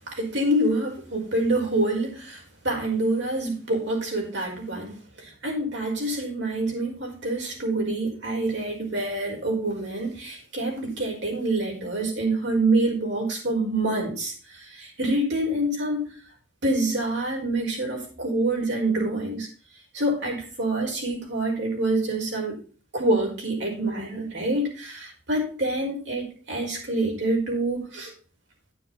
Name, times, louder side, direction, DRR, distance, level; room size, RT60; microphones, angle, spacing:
voice 1, 0.1-4.9 5.4-14.3 14.7-16.0 16.6-19.5 19.9-22.6 22.9-28.1, right 2 dB, 70° right, -1 dB, 5.1 m, -26 dB
9.4 x 9.3 x 4.1 m, 0.38 s
head